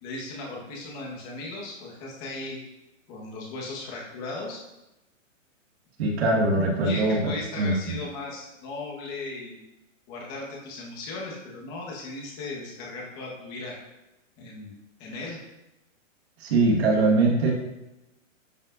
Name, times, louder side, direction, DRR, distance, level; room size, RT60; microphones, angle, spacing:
voice 1, 0.0-2.6 3.1-4.6 6.8-9.6 10.1-13.7 14.4-14.7 15.0-15.4, left 2 dB, 20° left, -3 dB, 1.4 m, -37 dB
voice 2, 6.0-7.2 7.6-8.0 16.4-17.5, right 2 dB, 50° right, -1 dB, 1.7 m, -22 dB
11.0 x 5.3 x 2.6 m, 0.97 s
hypercardioid pair, 170°, 39 cm